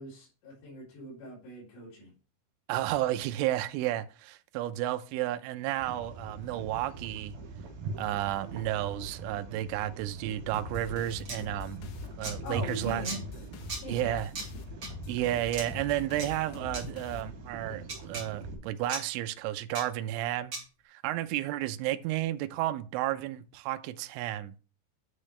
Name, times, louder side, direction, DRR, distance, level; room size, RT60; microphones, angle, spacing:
voice 1, 0.0-2.1 12.4-13.2 13.8-14.2 21.4-21.6, equal, 65° left, 5.8 m, -41 dB
voice 2, 2.7-7.3 8.0-11.8 12.2-13.1 13.9-14.3 15.1-20.5 20.9-24.5, right 14 dB, 85° right, 3.1 m, -32 dB
sound 1, 5.8-18.5, right 3 dB, 50° right, 4.0 m, -43 dB
sound 2, 10.5-17.7, left 7 dB, 80° left, 3.6 m, -45 dB
sound 3, 11.3-11.4 12.2-12.3 13.0-13.2 13.7-13.8 14.4-14.5 14.8-14.9 15.5-15.7 16.2-16.3 16.7-16.8 17.9-18.2 18.9-19.0 19.7-19.8 20.5-20.6, right 3 dB, 35° right, 2.3 m, -36 dB
9.8 x 8.4 x 3.2 m
omnidirectional pair, 5.7 m